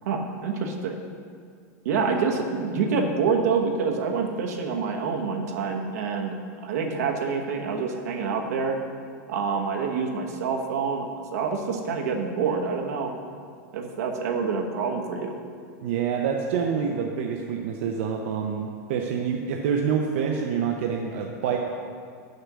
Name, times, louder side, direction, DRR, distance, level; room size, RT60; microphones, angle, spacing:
voice 1, 0.0-1.0 1.8-8.8 9.3-13.2 13.7-15.3, right 5 dB, 70° right, 2 dB, 1.1 m, -27 dB
voice 2, 15.8-21.6, right 7 dB, 45° right, 1 dB, 0.6 m, -27 dB
6.8 x 6.6 x 6.1 m, 2.2 s
supercardioid pair, 175°, 9 cm